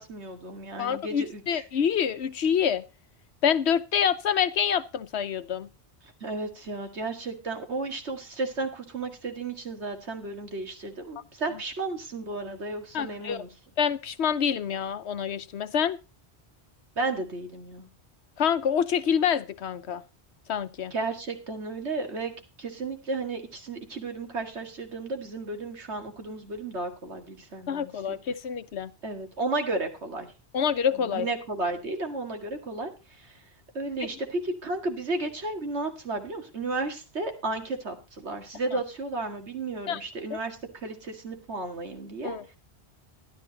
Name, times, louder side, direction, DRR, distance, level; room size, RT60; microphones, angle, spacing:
voice 1, 0.0-1.6 6.2-13.5 17.0-17.9 20.9-28.2 29.0-30.3 31.0-32.9 33.2-33.4 33.7-42.6, right 3 dB, 85° right, 2.3 m, -33 dB
voice 2, 0.8-2.8 3.4-5.7 12.9-13.4 13.8-16.0 18.4-20.0 20.5-20.9 27.7-28.9 30.5-31.3 38.7-38.8 39.9-40.0 42.2-42.4, left 7 dB, 80° left, 1.1 m, -26 dB
12.5 x 11.5 x 4.1 m
omnidirectional pair, 1.1 m